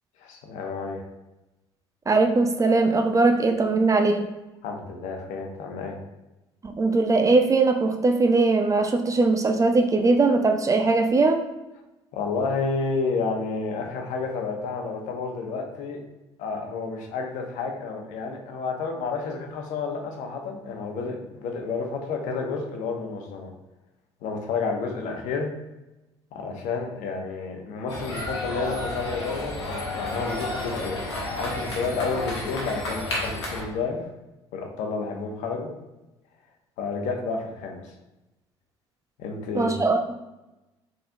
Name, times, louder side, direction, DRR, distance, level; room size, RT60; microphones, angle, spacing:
voice 1, 0.2-1.0 4.6-6.0 12.1-16.0 16.4-23.5 24.2-25.5 26.3-31.0 31.4-34.1 34.5-35.7 36.8-37.8 39.2-39.7, left 4 dB, 60° left, 3 dB, 0.9 m, -30 dB
voice 2, 2.1-4.3 6.6-11.5 39.5-40.1, right 3 dB, 25° right, 6 dB, 0.5 m, -20 dB
sound 1, 27.9-33.6, left 2 dB, 85° left, 1.0 m, -31 dB
4.3 x 3.7 x 2.7 m, 1.0 s
hypercardioid pair, 55°, 14 cm